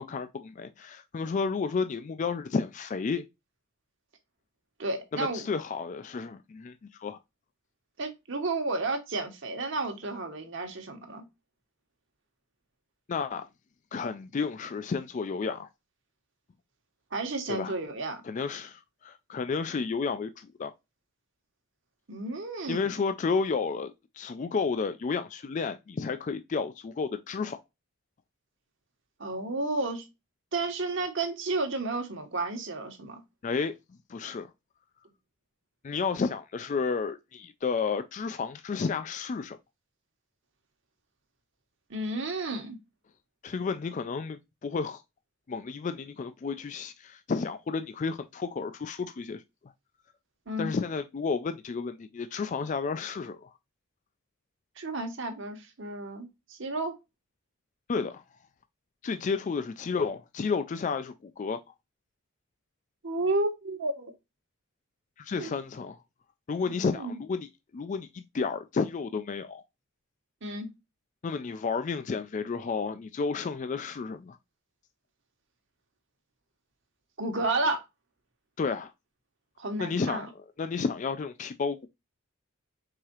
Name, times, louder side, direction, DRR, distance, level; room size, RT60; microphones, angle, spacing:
voice 1, 0.0-3.2 5.1-7.2 13.1-13.5 13.9-15.7 17.5-17.8 18.2-20.7 22.7-27.6 33.4-33.7 34.1-34.5 35.8-39.6 43.4-45.0 45.5-49.4 50.6-53.5 57.9-58.2 59.0-61.6 65.2-66.0 66.5-67.5 67.7-69.6 71.2-74.4 78.6-78.9 79.8-80.3 80.6-81.9, left 5 dB, 35° left, 0.3 m, -31 dB
voice 2, 4.8-5.4 8.0-11.3 17.1-18.2 22.1-23.0 29.2-30.1 30.5-33.2 41.9-42.8 50.5-50.8 54.8-56.9 63.0-64.1 65.4-65.5 66.6-67.2 70.4-70.7 77.2-77.8 79.6-80.3, right 2 dB, 60° right, 1.1 m, -32 dB
4.8 x 3.6 x 2.8 m
head